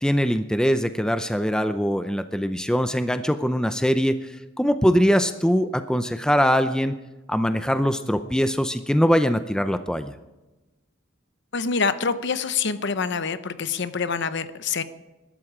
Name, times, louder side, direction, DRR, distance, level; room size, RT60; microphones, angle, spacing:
voice 1, 0.0-4.2 4.6-6.9 7.3-10.1, equal, 5° left, 9 dB, 0.5 m, -22 dB
voice 2, 11.5-14.8, left 5 dB, 60° left, 12 dB, 0.8 m, -26 dB
21.5 x 12.5 x 5.0 m, 1.1 s
head